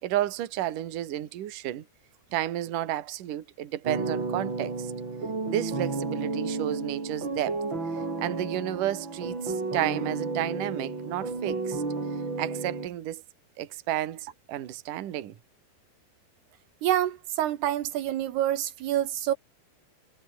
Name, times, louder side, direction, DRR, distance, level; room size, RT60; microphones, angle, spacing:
voice 1, 0.0-1.9 2.3-4.9 5.5-7.6 7.9-11.8 12.4-13.2 13.6-15.4, right 13 dB, 60° right, 3.0 m, -32 dB
sound 1, 3.8-12.9, right 3 dB, 30° right, 5.3 m, -32 dB
voice 2, 16.8-19.3, right 12 dB, 80° right, 3.4 m, -27 dB
omnidirectional pair, 4.7 m